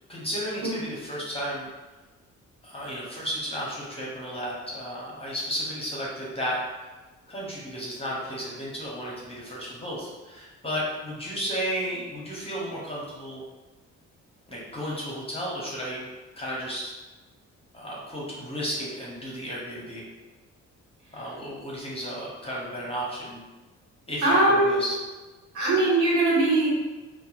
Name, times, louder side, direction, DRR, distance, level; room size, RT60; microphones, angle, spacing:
voice 1, 0.1-1.7 2.6-6.6 7.3-13.4 14.5-16.0 16.4-16.9 17.7-20.0 21.1-23.4 24.1-25.0, equal, 20° left, -5 dB, 0.7 m, -33 dB
voice 2, 24.2-24.8 25.5-26.7, right 2 dB, 85° right, -6 dB, 1.1 m, -21 dB
2.7 x 2.2 x 2.4 m, 1.2 s
cardioid pair, 90°, 30 cm